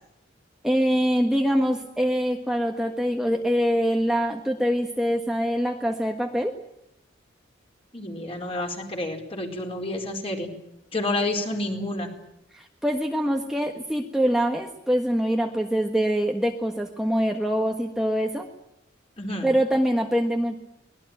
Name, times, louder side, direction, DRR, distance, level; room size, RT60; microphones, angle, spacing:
voice 1, 0.6-6.5 12.5-18.5 19.4-20.6, equal, 5° right, 2 dB, 1.5 m, -24 dB
voice 2, 7.9-10.5 10.9-12.1 19.2-19.5, left 2 dB, 30° left, 2 dB, 4.6 m, -29 dB
24.0 x 20.0 x 9.0 m, 0.82 s
head